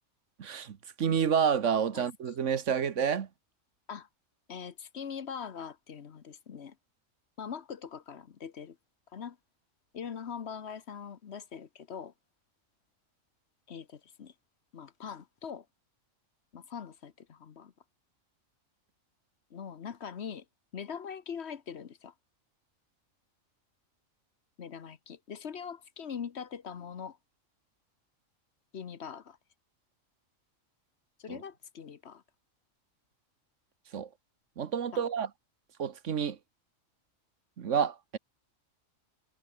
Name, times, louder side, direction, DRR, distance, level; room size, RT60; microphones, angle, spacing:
voice 1, 0.4-3.3 31.3-31.4 33.9-34.1 34.6-35.3 35.8-36.4 37.6-38.2, right 7 dB, 65° right, 1.4 m, -29 dB
voice 2, 4.5-6.8 7.4-8.8 9.1-9.4 9.9-12.1 13.7-14.3 14.7-15.7 16.5-17.7 19.5-20.4 20.7-22.1 24.6-27.2 28.7-29.4 31.2-32.2 34.9-35.1, left 7 dB, 55° left, 1.2 m, -42 dB
omnidirectional pair, 1.4 m